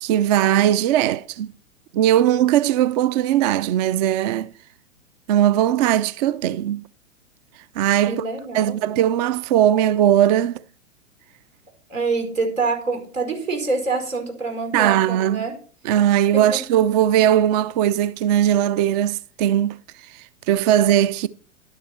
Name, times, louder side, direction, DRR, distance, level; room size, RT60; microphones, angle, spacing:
voice 1, 0.0-1.5 1.9-4.5 5.3-6.8 7.8-8.2 8.5-10.6 14.7-15.4 15.8-21.3, right 11 dB, 35° right, 0.4 m, -19 dB
voice 2, 8.1-8.8 11.9-15.5 16.5-16.6, right 4 dB, 80° right, 5.0 m, -26 dB
11.5 x 9.9 x 4.4 m
hypercardioid pair, 110°, 38 cm